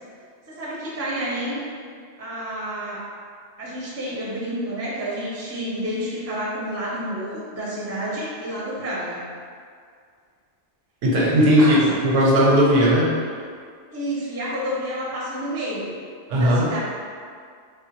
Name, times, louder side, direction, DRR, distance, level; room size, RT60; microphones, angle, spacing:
voice 1, 0.5-1.6 2.2-3.0 3.6-9.2 11.3-11.8 13.9-16.0 16.3-16.8, equal, 25° right, -6 dB, 0.3 m, -29 dB
voice 2, 11.0-11.8 12.0-13.2 16.3-16.7, equal, 85° right, -4 dB, 1.0 m, -17 dB
3.1 x 2.4 x 2.9 m, 2.1 s
omnidirectional pair, 1.3 m